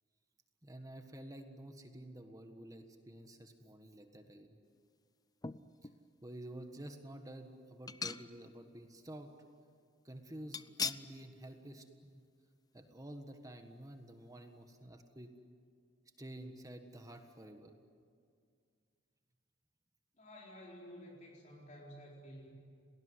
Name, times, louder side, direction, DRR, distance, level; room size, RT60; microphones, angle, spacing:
voice 1, 0.6-4.6 6.2-9.3 10.1-12.2 12.7-15.3 16.2-17.7, right 1 dB, 20° right, 6 dB, 1.6 m, -50 dB
sound 1, 5.4-6.0 6.6-6.7 7.9-8.6 8.9-9.0 10.5-11.1 11.5-11.7 12.0-12.1, left 5 dB, 20° left, 0.6 m, -41 dB
voice 2, 20.2-22.5, equal, 40° left, -2 dB, 4.3 m, -52 dB
29.5 x 19.5 x 9.8 m, 2.2 s
head